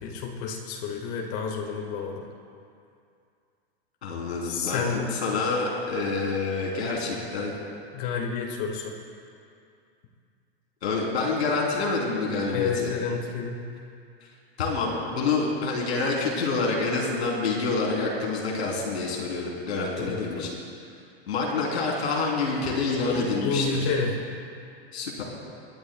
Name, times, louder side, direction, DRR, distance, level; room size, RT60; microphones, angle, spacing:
voice 1, 0.0-2.3 4.4-5.1 7.9-9.0 12.5-13.6 20.1-20.5 23.1-24.2, left 5 dB, 50° left, 0 dB, 1.8 m, -30 dB
voice 2, 4.0-7.5 10.8-12.9 14.6-20.5 21.3-23.9 24.9-25.2, left 3 dB, 90° left, -3 dB, 3.6 m, -27 dB
25.5 x 11.0 x 2.3 m, 2.4 s
hypercardioid pair, 120°, 32 cm